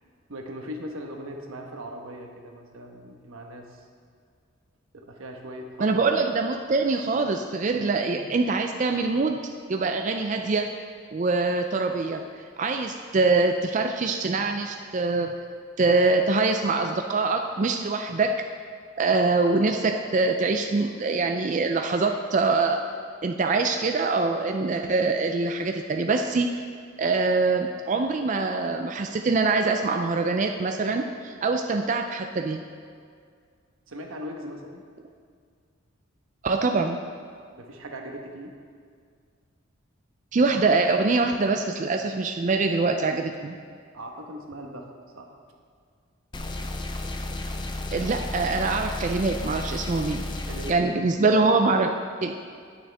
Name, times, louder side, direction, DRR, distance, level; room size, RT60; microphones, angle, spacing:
voice 1, 0.3-3.9 4.9-6.0 33.9-34.8 37.6-38.5 43.9-45.3 50.5-51.1 51.4-51.5, equal, 85° right, 2 dB, 1.2 m, -39 dB
voice 2, 5.8-9.4 9.7-10.7 11.1-12.2 12.6-15.3 15.8-18.4 19.0-22.8 23.2-26.6 27.0-32.6 36.4-37.0 40.3-43.6 47.9-50.2 50.7-52.3, right 3 dB, 35° right, 4 dB, 0.4 m, -24 dB
sound 1, 46.3-50.7, left 1 dB, 20° left, 0.6 m, -32 dB
18.5 x 6.3 x 3.4 m, 2.1 s
head